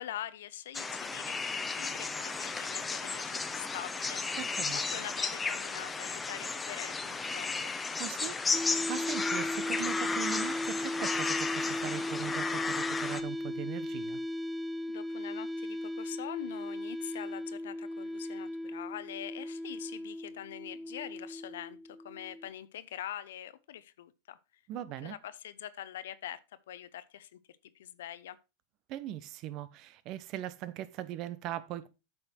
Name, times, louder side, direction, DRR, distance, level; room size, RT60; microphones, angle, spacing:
voice 1, 0.0-7.7 14.9-24.4 25.0-26.4 26.7-27.4 27.7-28.4, left 11 dB, 80° left, 0.7 m, -44 dB
Flock of birds rivulet, 0.7-13.2, left 4 dB, 15° left, 0.9 m, -34 dB
voice 2, 4.4-4.8 8.0-14.2 24.7-25.1 28.9-31.9, right 12 dB, 50° right, 1.0 m, -40 dB
sound 1, 8.5-22.5, left 1 dB, 5° right, 0.6 m, -37 dB
8.8 x 6.2 x 4.5 m
hypercardioid pair, 110°, 0 cm